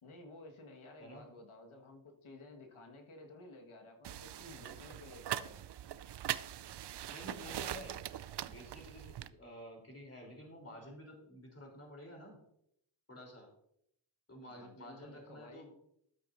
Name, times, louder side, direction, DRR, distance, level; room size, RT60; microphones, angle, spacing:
voice 1, 0.0-5.6 14.5-15.7, left 2 dB, 75° left, 2 dB, 1.6 m, -54 dB
sound 1, 4.0-9.3, right 11 dB, 60° right, 0.5 m, -42 dB
voice 2, 7.1-8.0 8.4-12.4 13.1-13.5 14.3-15.7, equal, 30° left, 0 dB, 3.3 m, -51 dB
12.5 x 8.2 x 2.6 m, 0.74 s
cardioid pair, 70°, 49 cm